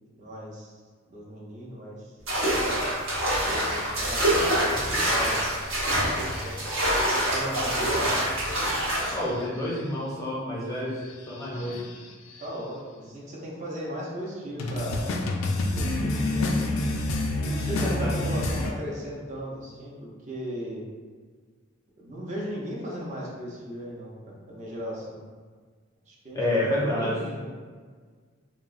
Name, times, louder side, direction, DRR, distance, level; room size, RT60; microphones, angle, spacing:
voice 1, 0.1-0.7 1.1-2.1 3.4-5.8 6.2-6.8 7.3-8.1 12.4-15.2 15.7-16.8 17.4-20.8 22.0-25.3 26.1-27.6, equal, 35° right, -4 dB, 0.6 m, -37 dB
sound 1, 2.3-9.2, right 1 dB, 90° right, 0.9 m, -25 dB
sound 2, 3.5-4.5 5.7-6.6 6.9-7.1 8.4-9.8 11.1-12.5 14.6-18.7, left 2 dB, 80° left, 0.3 m, -30 dB
voice 2, 9.1-11.0 11.3-11.8 17.8-18.1 26.3-27.2, left 1 dB, 15° left, -5 dB, 0.4 m, -28 dB
3.5 x 2.0 x 2.4 m, 1.5 s
head